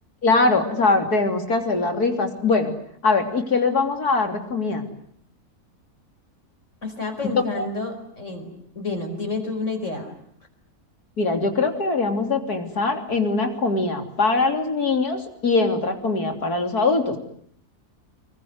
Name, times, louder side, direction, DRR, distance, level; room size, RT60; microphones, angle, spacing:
voice 1, 0.2-2.7 3.0-4.9 7.6-7.7 11.2-17.2, left 3 dB, 85° left, 6 dB, 3.8 m, -22 dB
voice 2, 6.8-10.1, left 3 dB, 50° left, 3 dB, 5.5 m, -30 dB
26.5 x 23.5 x 9.6 m, 0.66 s
omnidirectional pair, 1.6 m